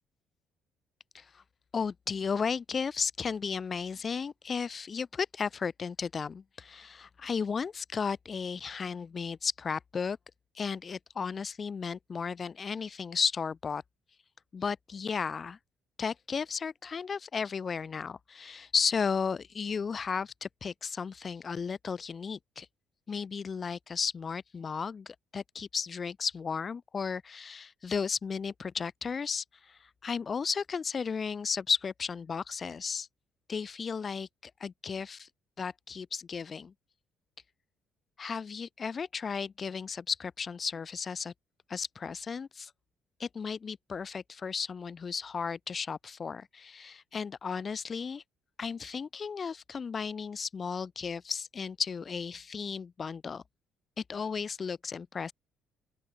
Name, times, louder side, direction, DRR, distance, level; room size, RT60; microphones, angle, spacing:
voice 1, 1.7-10.2 10.5-13.8 14.5-15.6 16.0-22.7 23.1-33.1 33.5-35.3 35.6-36.7 38.2-41.3 41.7-42.7 43.2-48.2 48.6-53.4 54.1-55.3, left 5 dB, 35° left, 0.4 m, -34 dB
open air
cardioid pair, 105°, 0 cm